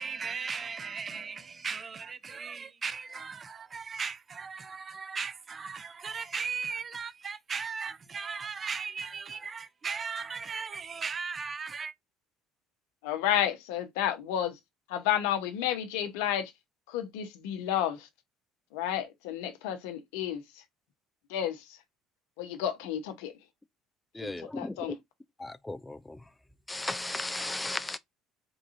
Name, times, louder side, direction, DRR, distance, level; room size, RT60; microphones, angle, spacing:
voice 1, 0.0-11.9, right 5 dB, 35° right, 0.6 m, -37 dB
voice 2, 13.0-14.5 14.9-16.5 16.9-18.1 18.7-20.4 21.3-21.6 22.4-23.3 24.2-25.0, left 10 dB, 70° left, 0.7 m, -31 dB
voice 3, 24.2-24.9 25.4-26.2 26.7-28.0, left 2 dB, 10° left, 0.4 m, -35 dB
3.8 x 3.6 x 2.5 m
hypercardioid pair, 60°, 0 cm